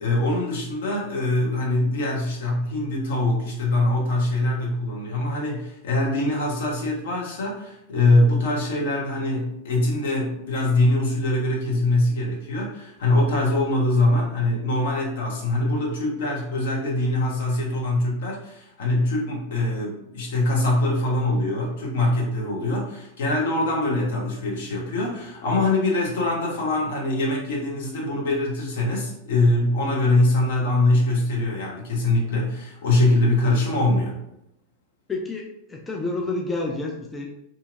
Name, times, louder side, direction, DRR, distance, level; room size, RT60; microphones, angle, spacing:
voice 1, 0.0-34.2, left 2 dB, 55° left, -2 dB, 0.8 m, -23 dB
voice 2, 35.1-37.3, left 2 dB, 15° left, 0 dB, 0.3 m, -29 dB
2.7 x 2.5 x 2.5 m, 0.83 s
figure-of-eight pair, 90°, 0 cm